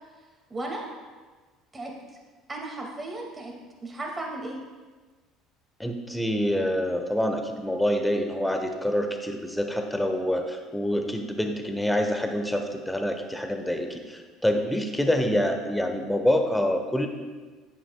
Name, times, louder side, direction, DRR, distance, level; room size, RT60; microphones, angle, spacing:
voice 1, 0.5-0.9 1.7-1.9 2.5-3.5 3.8-4.6, right 2 dB, 20° right, 0 dB, 2.0 m, -35 dB
voice 2, 5.8-17.1, equal, 5° left, 5 dB, 1.0 m, -26 dB
9.7 x 8.8 x 2.3 m, 1.3 s
hypercardioid pair, 65°, 0 cm